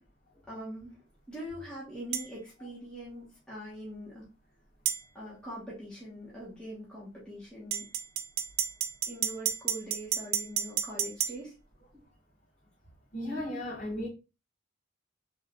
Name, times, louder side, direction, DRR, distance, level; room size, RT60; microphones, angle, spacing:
voice 1, 0.5-0.9 1.3-4.2 5.1-7.8 9.1-11.5, equal, 5° left, 1.2 m, -42 dB
sound 1, 2.1-2.3 4.9-5.0 7.7-11.3, right 10 dB, 50° right, 0.4 m, -31 dB
voice 2, 13.1-14.1, left 1 dB, 40° left, 2.0 m, -35 dB
3.6 x 3.5 x 2.4 m
head